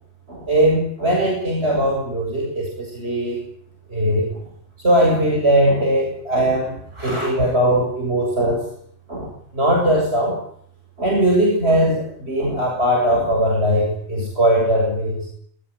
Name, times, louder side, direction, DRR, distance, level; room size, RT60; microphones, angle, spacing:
voice 1, 0.3-3.4 3.9-4.4 4.8-8.7 9.1-10.4 11.0-15.3, right 1 dB, 60° right, -1 dB, 8.0 m, -19 dB
21.5 x 21.0 x 9.8 m, 0.62 s
omnidirectional pair, 1.2 m